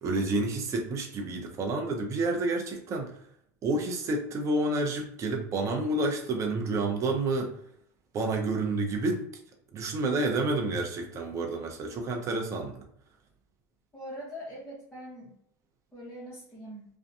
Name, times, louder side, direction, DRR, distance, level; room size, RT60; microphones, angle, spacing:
voice 1, 0.0-3.1 3.6-7.5 8.1-9.3 9.7-12.8, right 2 dB, 35° right, 2 dB, 0.6 m, -29 dB
voice 2, 13.9-15.3 15.9-16.9, equal, 10° left, -8 dB, 0.9 m, -42 dB
2.6 x 2.2 x 2.5 m, 0.70 s
supercardioid pair, 130°, 9 cm